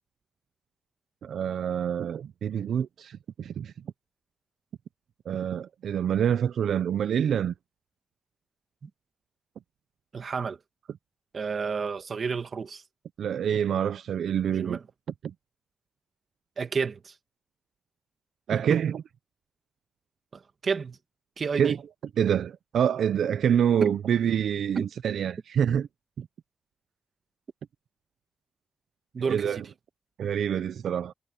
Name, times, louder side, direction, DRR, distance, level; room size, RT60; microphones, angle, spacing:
voice 1, 1.2-3.7 5.3-7.5 13.2-14.8 18.5-19.0 21.6-21.8 22.2-25.9 26.2-26.3 29.3-29.6 30.2-31.1, right 8 dB, 85° right, 0.5 m, -26 dB
voice 2, 10.1-10.6 11.3-12.8 14.5-14.8 16.6-17.1 18.5-18.8 20.3-21.0 21.4-21.8 23.8-23.9 24.8-24.9 29.1-29.6, right 5 dB, 45° right, 2.0 m, -30 dB
wide cardioid pair, 140°, 0 cm